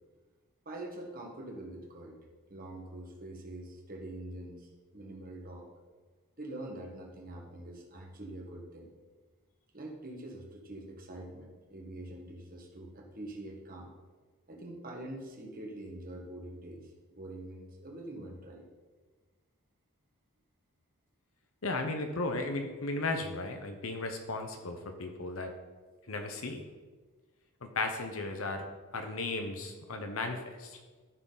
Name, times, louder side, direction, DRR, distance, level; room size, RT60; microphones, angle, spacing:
voice 1, 0.6-2.2 2.5-5.7 6.4-8.9 9.7-13.9 14.5-18.6, right 1 dB, 40° right, 0 dB, 1.7 m, -44 dB
voice 2, 21.6-25.5 26.1-26.6 27.6-28.6 28.9-30.8, left 2 dB, 75° left, 5 dB, 0.9 m, -35 dB
13.0 x 6.3 x 4.0 m, 1.4 s
head